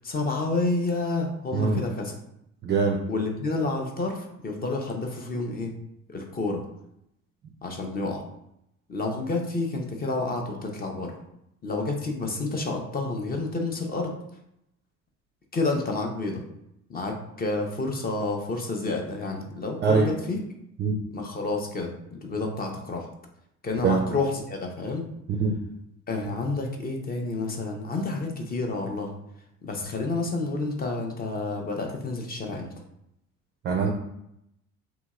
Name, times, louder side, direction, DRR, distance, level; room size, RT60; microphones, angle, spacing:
voice 1, 0.0-2.2 3.1-5.7 6.1-6.6 7.6-8.2 8.9-11.1 11.6-14.1 15.5-16.4 16.9-20.4 21.1-23.1 23.6-25.0 26.1-29.1 29.6-32.7, left 3 dB, 20° left, 2 dB, 0.6 m, -29 dB
voice 2, 2.6-3.0 19.8-20.1 20.8-20.9 23.8-24.0 25.4-25.5 33.6-33.9, right 4 dB, 25° right, 1 dB, 0.4 m, -22 dB
2.8 x 2.7 x 2.4 m, 0.80 s
figure-of-eight pair, 60°, 42 cm